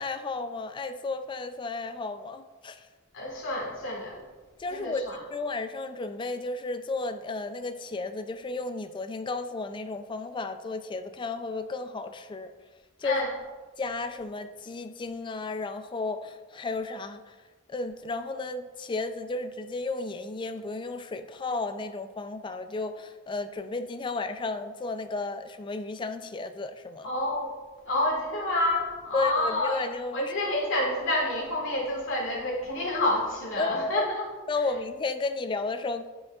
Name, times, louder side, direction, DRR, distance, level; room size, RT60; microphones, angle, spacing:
voice 1, 0.0-2.9 4.6-12.5 13.0-13.2 13.8-17.3 17.7-27.1 29.1-30.3 33.6-34.1 34.5-36.1, left 3 dB, 25° left, 9 dB, 0.3 m, -33 dB
voice 2, 3.1-4.2 4.7-5.2 13.0-13.3 27.0-27.5 27.8-29.8 30.1-34.3, left 1 dB, 75° left, -3 dB, 1.9 m, -28 dB
9.5 x 5.0 x 2.4 m, 1.3 s
head